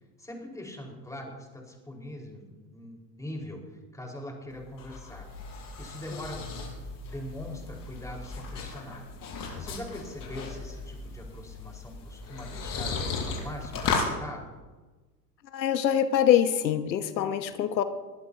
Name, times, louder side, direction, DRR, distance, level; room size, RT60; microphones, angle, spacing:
voice 1, 0.2-5.3 5.8-6.4 7.0-9.0 9.6-14.6, left 1 dB, 5° left, 0 dB, 4.9 m, -42 dB
sound 1, 4.5-14.1, left 4 dB, 40° left, 6.5 m, -36 dB
voice 2, 15.5-17.8, left 10 dB, 85° left, 10 dB, 1.2 m, -24 dB
23.0 x 16.5 x 2.9 m, 1.2 s
hypercardioid pair, 100°, 50 cm